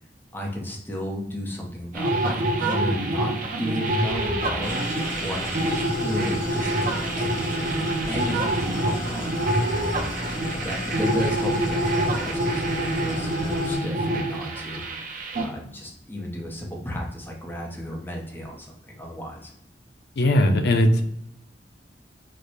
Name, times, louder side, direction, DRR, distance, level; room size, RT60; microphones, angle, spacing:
voice 1, 0.3-4.8 5.2-7.4 7.8-10.1 10.5-14.8 15.4-19.5, equal, 10° left, -1 dB, 0.7 m, -34 dB
sound 1, 1.9-15.5, right 1 dB, 50° right, 0.6 m, -26 dB
Idling, 4.6-13.8, left 1 dB, 45° left, 1.3 m, -33 dB
voice 2, 20.2-21.0, left 1 dB, 65° left, 6 dB, 0.5 m, -19 dB
4.1 x 2.2 x 3.1 m, 0.74 s
head